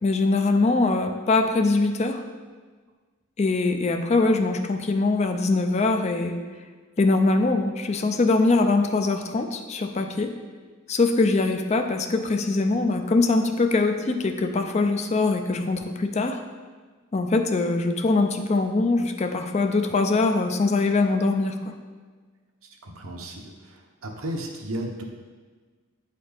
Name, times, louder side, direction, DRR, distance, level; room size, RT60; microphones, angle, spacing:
voice 1, 0.0-2.2 3.4-6.4 7.0-10.3 10.9-16.4 17.1-21.5, left 3 dB, 30° left, 5 dB, 0.4 m, -22 dB
voice 2, 22.8-25.0, right 1 dB, 80° right, 1 dB, 0.9 m, -34 dB
8.6 x 4.2 x 3.4 m, 1.4 s
head